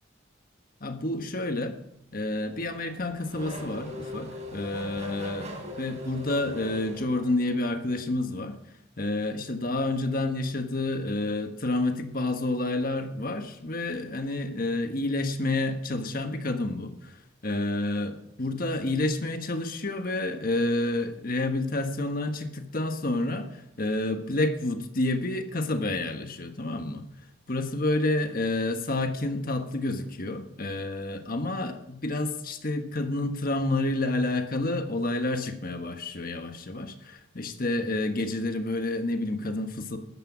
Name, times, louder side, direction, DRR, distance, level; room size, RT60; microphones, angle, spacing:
voice 1, 0.8-1.7 2.1-5.5 5.8-8.6 9.0-17.1 17.4-23.5 23.8-27.0 27.5-40.0, left 2 dB, 45° left, 7 dB, 1.4 m, -29 dB
Race car auto racing / Accelerating revving vroom, 2.1-7.7, left 1 dB, 35° right, 4.2 m, -41 dB
13.5 x 10.5 x 7.4 m, 0.79 s
head